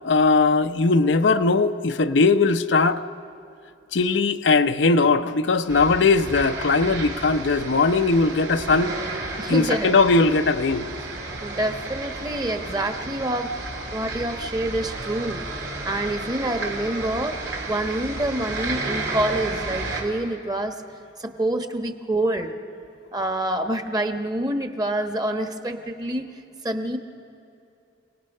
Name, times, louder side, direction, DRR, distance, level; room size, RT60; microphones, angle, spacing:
voice 1, 0.0-3.0 3.9-9.0 9.5-10.9, left 3 dB, 90° left, 9 dB, 0.7 m, -19 dB
sound 1, 5.7-20.0, right 2 dB, 80° right, 3.5 m, -32 dB
voice 2, 9.4-10.0 11.4-13.5 13.9-15.4 15.8-17.4 17.7-20.8 21.2-22.5 23.1-26.3 26.6-27.0, right 1 dB, 20° right, 6 dB, 1.1 m, -27 dB
28.5 x 18.5 x 5.5 m, 2.7 s
head